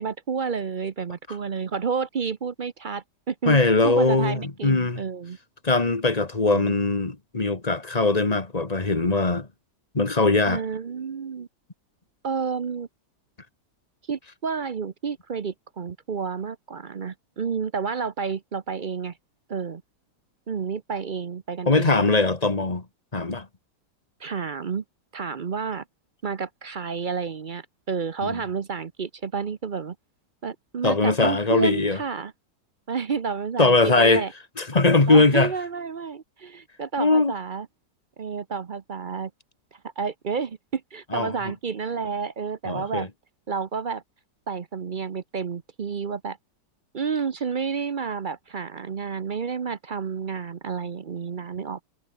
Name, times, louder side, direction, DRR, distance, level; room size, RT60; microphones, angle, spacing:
voice 1, 0.0-3.6 3.8-5.4 6.5-6.7 10.5-11.5 12.2-12.9 14.1-19.2 19.5-19.8 20.5-22.0 24.2-24.8 25.1-25.8 26.2-30.0 30.4-32.3 32.9-34.3 35.1-37.7 38.2-39.3 40.0-43.1 43.5-44.0 44.5-46.4 46.9-51.8, right 5 dB, 45° right, 0.6 m, -30 dB
voice 2, 3.5-5.0 5.6-9.5 9.9-10.6 21.7-22.9 23.1-23.5 28.2-28.4 30.8-32.0 33.6-34.2 34.6-35.5 37.0-37.3 41.1-41.3 42.7-43.1, left 3 dB, 20° left, 1.9 m, -21 dB
omnidirectional pair, 1.9 m